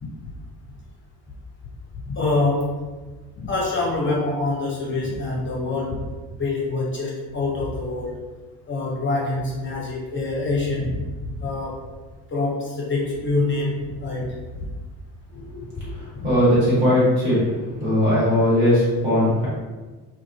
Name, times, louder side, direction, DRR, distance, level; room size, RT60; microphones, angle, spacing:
voice 1, 2.1-2.7 3.4-6.0 6.4-8.1 8.7-11.0 11.4-11.8 12.3-14.7 16.2-16.3, left 2 dB, 25° left, -4 dB, 0.6 m, -25 dB
voice 2, 16.2-17.4 17.8-19.5, left 1 dB, 70° right, -9 dB, 1.4 m, -18 dB
2.4 x 2.2 x 2.3 m, 1.3 s
figure-of-eight pair, 50°, 49 cm